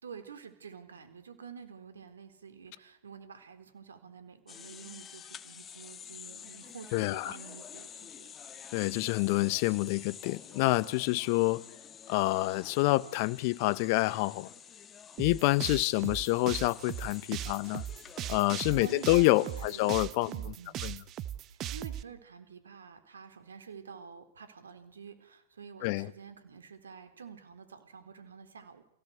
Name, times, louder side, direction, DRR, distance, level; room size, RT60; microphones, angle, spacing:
voice 1, 0.0-8.3 18.4-20.8 21.5-28.8, right 6 dB, 80° right, 4.2 m, -49 dB
sound 1, 4.5-19.9, left 8 dB, 25° left, 1.8 m, -49 dB
voice 2, 6.9-7.3 8.7-11.6 12.1-14.5 15.2-17.8 18.3-20.3 20.8-21.0 25.8-26.1, left 20 dB, 50° left, 1.2 m, -27 dB
sound 2, 15.2-22.0, right 12 dB, 35° right, 1.1 m, -38 dB
29.5 x 17.0 x 8.2 m
hypercardioid pair, 110°, 0 cm